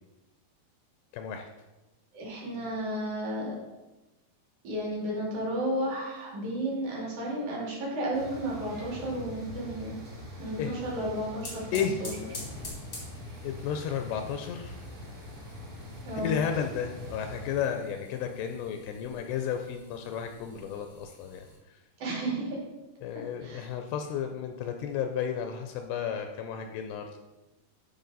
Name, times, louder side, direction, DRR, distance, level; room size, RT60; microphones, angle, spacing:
voice 1, 1.1-1.5 10.6-10.7 11.7-12.0 13.4-14.8 16.2-21.8 23.0-27.1, left 8 dB, 80° left, 5 dB, 2.5 m, -33 dB
voice 2, 2.1-3.5 4.6-9.9 10.4-11.7 12.0-12.1 16.0-16.3 22.0-22.6 23.4-23.6, right 1 dB, 45° right, -4 dB, 3.5 m, -32 dB
sound 1, 8.1-17.5, left 1 dB, 65° right, 4.3 m, -43 dB
sound 2, 11.0-21.6, left 2 dB, 30° left, 1.1 m, -48 dB
13.0 x 5.4 x 4.0 m, 1.1 s
omnidirectional pair, 5.1 m